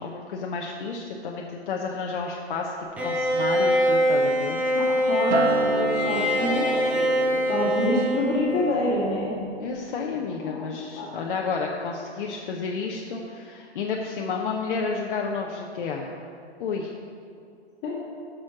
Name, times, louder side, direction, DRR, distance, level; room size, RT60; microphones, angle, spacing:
voice 1, 0.0-4.6 9.6-16.1 16.6-16.9, left 4 dB, 50° left, -1 dB, 0.8 m, -31 dB
Bowed string instrument, 3.0-9.0, equal, 5° right, 0.4 m, -24 dB
voice 2, 4.7-9.3 10.3-11.1 17.8-18.2, left 2 dB, 30° left, -7 dB, 2.3 m, -27 dB
Acoustic guitar, 5.3-9.7 10.1-10.5, right 3 dB, 75° right, 0.9 m, -31 dB
7.3 x 6.4 x 5.9 m, 2.5 s
hypercardioid pair, 130°, 34 cm